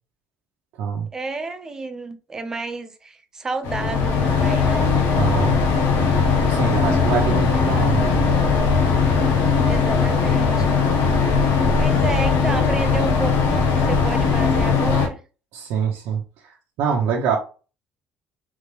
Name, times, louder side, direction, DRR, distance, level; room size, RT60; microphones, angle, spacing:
voice 1, 1.1-4.9 9.6-10.7 11.1-11.4 11.7-15.2, right 3 dB, 15° right, 0.4 m, -31 dB
sound 1, 3.6-15.1, left 5 dB, 85° left, 1.1 m, -19 dB
voice 2, 5.1-5.6 6.5-8.2 15.5-16.2 16.8-17.4, right 6 dB, 70° right, 0.9 m, -24 dB
3.6 x 3.4 x 3.3 m
cardioid pair, 175°, 4 cm